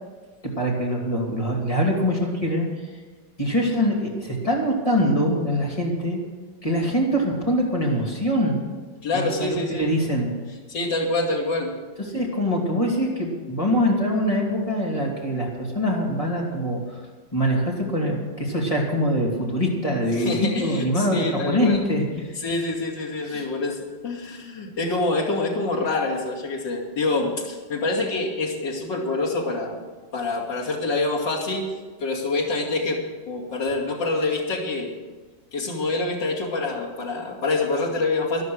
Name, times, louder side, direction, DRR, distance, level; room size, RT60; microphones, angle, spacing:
voice 1, 0.5-2.7 3.4-6.2 6.6-8.6 9.1-10.3 12.1-17.0 17.3-22.3 23.2-23.4, equal, 20° left, -3 dB, 2.7 m, -24 dB
voice 2, 9.0-9.9 10.7-11.7 20.1-21.8 22.4-29.8 30.1-34.9 35.5-38.4, left 2 dB, 70° left, -3 dB, 3.3 m, -26 dB
12.5 x 11.5 x 6.4 m, 1.3 s
omnidirectional pair, 2.0 m